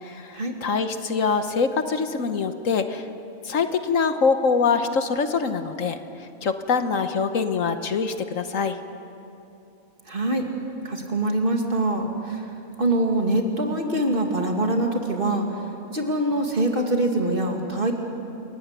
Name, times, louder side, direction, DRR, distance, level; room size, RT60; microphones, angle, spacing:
voice 1, 0.0-3.1 3.4-6.0 6.4-8.8, left 5 dB, 70° left, 8 dB, 1.5 m, -24 dB
voice 2, 10.1-10.4 10.8-12.4 12.8-15.5 15.9-17.9, right 1 dB, 40° right, 2 dB, 2.5 m, -24 dB
29.0 x 15.0 x 9.6 m, 2.8 s
omnidirectional pair, 1.5 m